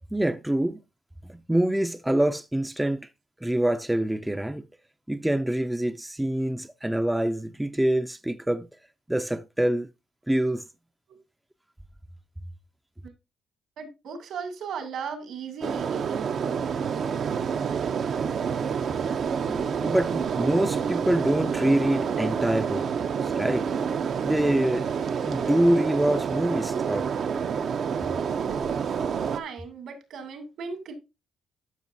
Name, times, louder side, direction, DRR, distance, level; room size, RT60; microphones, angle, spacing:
voice 1, 0.1-0.8 1.2-3.1 3.4-4.6 5.1-8.7 9.1-9.9 10.3-10.6 19.5-22.9 23.2-23.7 24.2-24.9 25.2-27.1, right 1 dB, 5° right, 0.4 m, -25 dB
voice 2, 13.8-16.7 28.9-30.9, right 5 dB, 75° right, 2.5 m, -37 dB
sound 1, 15.6-29.4, right 6 dB, 60° right, 0.6 m, -28 dB
12.0 x 5.9 x 2.7 m
cardioid pair, 90°, 0 cm